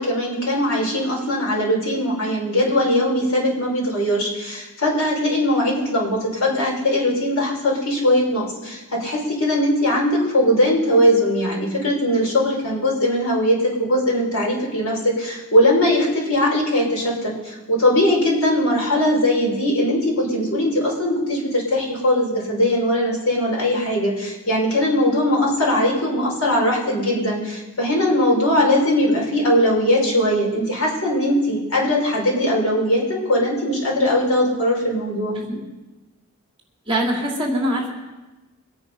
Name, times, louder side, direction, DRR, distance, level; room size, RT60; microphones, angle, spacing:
voice 1, 0.0-35.4, left 1 dB, 85° left, -3 dB, 5.5 m, -20 dB
voice 2, 36.9-37.9, right 1 dB, 25° right, -1 dB, 2.9 m, -23 dB
23.5 x 9.2 x 5.5 m, 1.1 s
head